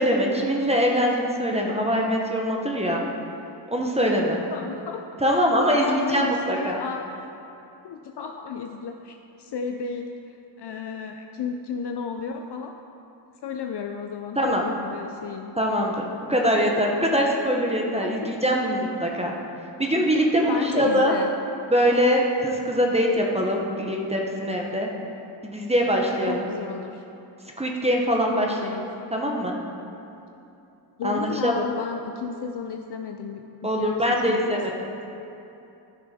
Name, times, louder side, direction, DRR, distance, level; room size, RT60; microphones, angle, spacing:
voice 1, 0.0-3.0 3.7-4.4 5.2-6.8 14.4-14.6 15.6-19.3 19.8-21.1 21.7-24.9 25.4-26.4 27.6-28.5 29.1-29.6 31.0-31.5 33.6-34.7, equal, 15° right, 0 dB, 0.9 m, -23 dB
voice 2, 4.5-5.5 5.8-7.3 7.8-12.7 13.4-15.5 18.0-18.3 20.5-21.3 26.3-27.0 28.3-28.9 31.0-33.4 33.7-34.6, left 6 dB, 65° left, 4 dB, 0.6 m, -33 dB
14.0 x 6.4 x 4.2 m, 2.8 s
wide cardioid pair, 150°, 43 cm